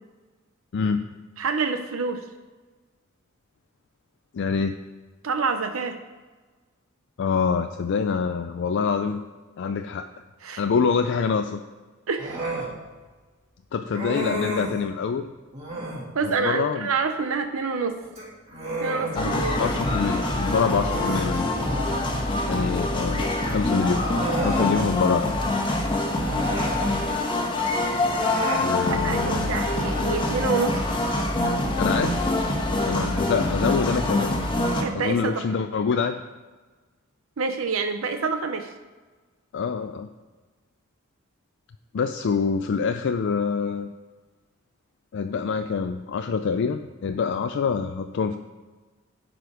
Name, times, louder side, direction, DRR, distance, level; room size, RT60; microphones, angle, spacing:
voice 1, 0.7-1.0 4.3-4.7 7.2-9.2 9.6-10.1 10.6-11.6 13.7-15.3 16.2-16.9 19.1-21.5 22.5-24.1 24.4-25.3 28.6-29.6 31.8-32.2 32.9-34.5 34.9-36.2 39.5-40.1 41.9-43.9 45.1-48.4, left 5 dB, 60° left, 7 dB, 0.4 m, -25 dB
voice 2, 1.4-2.2 5.2-6.0 10.4-10.6 12.1-12.4 16.1-18.0 18.8-19.6 28.9-30.8 34.8-35.4 37.4-38.7, right 4 dB, 75° right, 7 dB, 0.6 m, -27 dB
Human voice, 12.2-12.7 13.9-14.8 15.5-16.1 18.0-19.8 20.1-20.3 20.7-22.0 23.2-23.3 23.9-24.8 26.1-27.0 28.0-28.7, right 1 dB, 30° right, 2.5 m, -31 dB
sound 1, 19.2-34.8, left 1 dB, 25° left, 1.1 m, -25 dB
10.5 x 5.1 x 4.9 m, 1.3 s
head